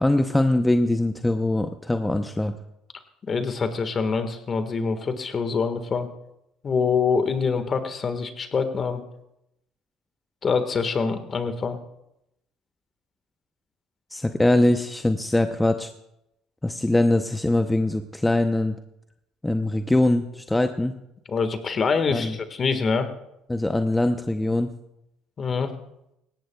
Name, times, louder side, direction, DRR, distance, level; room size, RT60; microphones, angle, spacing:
voice 1, 0.0-2.5 14.1-15.9 16.6-18.8 19.4-21.0 22.1-22.4 23.5-24.7, left 1 dB, 10° left, 7 dB, 0.7 m, -22 dB
voice 2, 3.3-6.1 6.6-9.0 10.4-11.8 21.3-23.1 25.4-25.7, left 5 dB, 40° left, 8 dB, 1.6 m, -25 dB
19.0 x 16.5 x 2.3 m, 0.84 s
supercardioid pair, 75°, 0 cm